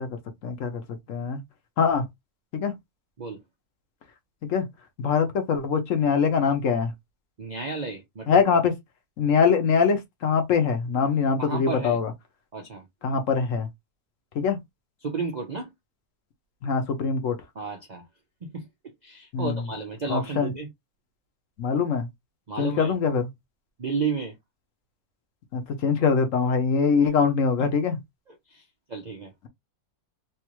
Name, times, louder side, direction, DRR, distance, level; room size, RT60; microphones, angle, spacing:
voice 1, 0.0-1.4 1.8-2.1 2.5-2.7 4.4-4.7 5.0-6.9 8.3-8.7 9.2-12.1 13.0-13.7 14.3-14.6 16.6-17.4 19.3-19.7 20.1-20.5 21.6-22.1 22.6-23.3 25.5-28.0, left 6 dB, 60° left, 1.0 m, -23 dB
voice 2, 7.4-8.4 11.4-12.0 12.5-12.9 15.0-15.7 17.6-18.0 18.4-18.7 19.0-20.7 22.5-22.9 23.8-24.4 28.5-28.6 28.9-29.3, right 4 dB, 80° right, 0.4 m, -32 dB
3.4 x 2.5 x 2.9 m
omnidirectional pair, 1.7 m